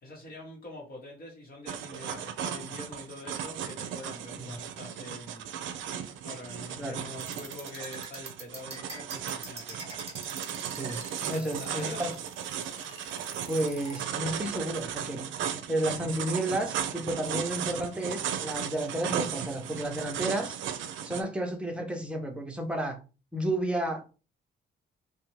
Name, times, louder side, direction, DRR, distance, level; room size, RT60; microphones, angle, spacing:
voice 1, 0.0-5.5 6.2-9.8 11.2-12.2, left 2 dB, 50° left, -3 dB, 1.0 m, -45 dB
sound 1, 1.7-21.2, right 9 dB, 75° right, 0.4 m, -36 dB
sound 2, 7.2-14.0, right 3 dB, 30° right, 1.1 m, -44 dB
voice 2, 11.3-12.1 13.5-15.3 15.7-20.6 21.0-23.0 23.3-24.2, right 1 dB, 5° right, 2 dB, 0.7 m, -32 dB
2.6 x 2.2 x 3.0 m, 0.33 s
cardioid pair, 90°, 20 cm